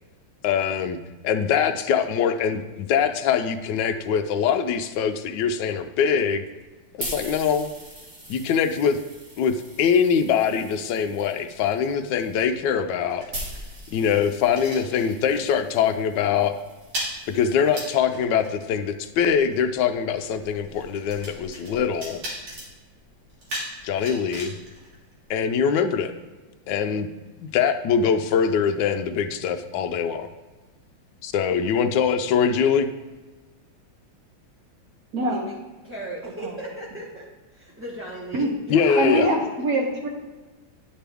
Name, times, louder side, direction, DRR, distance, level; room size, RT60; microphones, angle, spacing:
voice 1, 0.4-1.0 1.2-6.5 6.9-7.7 8.3-9.0 9.4-13.3 13.9-16.5 17.3-22.2 23.8-24.5 25.3-26.1 26.7-27.1 27.4-30.3 31.2-32.9 38.7-39.3, left 7 dB, 70° left, 8 dB, 1.1 m, -23 dB
sound 1, 6.6-18.0 18.7-22.3, right 1 dB, 40° right, 1.9 m, -43 dB
sound 2, 12.5-15.5 15.7-16.0 16.3-25.7, equal, 85° right, 3.1 m, -39 dB
voice 2, 35.2-35.5 35.8-37.3 37.5-39.4, right 1 dB, 10° right, -6 dB, 0.6 m, -36 dB
voice 3, 36.2-36.6 38.3-38.5 39.0-40.1, right 2 dB, 55° right, 1 dB, 1.2 m, -24 dB
10.0 x 5.3 x 3.4 m, 1.3 s
omnidirectional pair, 2.3 m